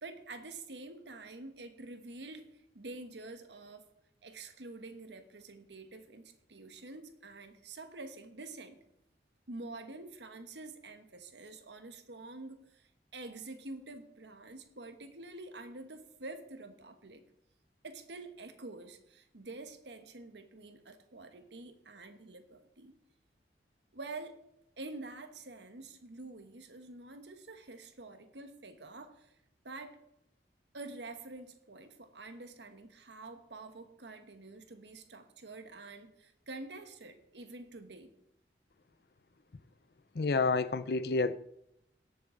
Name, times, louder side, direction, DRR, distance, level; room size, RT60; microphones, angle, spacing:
voice 1, 0.0-3.9 4.2-8.8 9.5-17.2 17.8-22.9 23.9-24.4 24.8-29.3 29.6-30.0 30.7-38.1, right 2 dB, 85° right, 1.3 m, -47 dB
voice 2, 40.1-41.4, left 3 dB, 60° left, 0.5 m, -29 dB
17.5 x 6.8 x 3.9 m
head